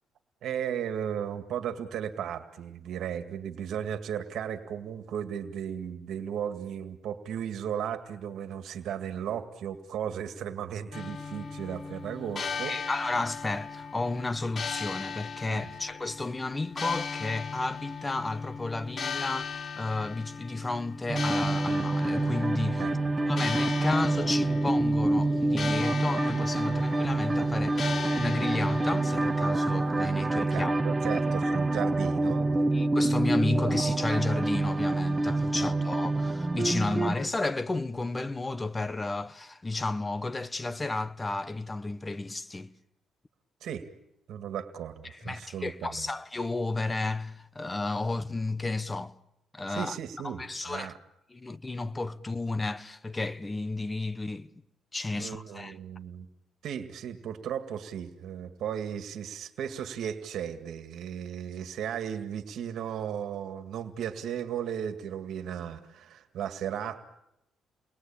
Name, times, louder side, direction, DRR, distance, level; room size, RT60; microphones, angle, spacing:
voice 1, 0.4-12.7 15.5-15.6 22.8-22.9 30.3-32.6 35.8-35.9 43.6-43.8 44.3-46.1 49.7-51.0 55.1-56.3 56.6-67.0, right 9 dB, 75° right, 2.0 m, -35 dB
sound 1, 10.9-30.2, left 5 dB, 45° left, 1.2 m, -38 dB
voice 2, 12.3-22.9 23.3-30.7 32.7-42.7 45.0-49.1 49.5-50.0 50.2-50.9 51.3-54.5 54.9-55.8, left 3 dB, 20° left, 1.2 m, -32 dB
sound 2, 21.1-37.2, right 2 dB, 20° right, 1.2 m, -27 dB
29.5 x 21.0 x 8.8 m
cardioid pair, 90°, 0 cm